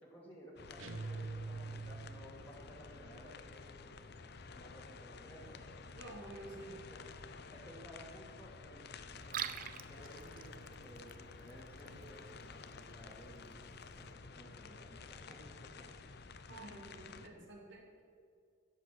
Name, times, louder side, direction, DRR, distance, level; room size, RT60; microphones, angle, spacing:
voice 1, 0.0-3.9 4.5-5.7 6.4-7.0 7.5-8.9 9.3-13.5 13.8-15.4 15.8-15.9, equal, 10° left, -6 dB, 2.4 m, -56 dB
sound 1, 0.6-17.3, left 4 dB, 55° left, 0.7 m, -52 dB
sound 2, 0.8-2.5, right 3 dB, 85° right, 0.9 m, -44 dB
voice 2, 5.9-6.8 16.5-18.0, right 2 dB, 65° right, -2 dB, 3.0 m, -50 dB
Liquid, 9.1-14.1, right 8 dB, 45° right, 0.6 m, -48 dB
16.0 x 8.1 x 6.2 m, 2.4 s
head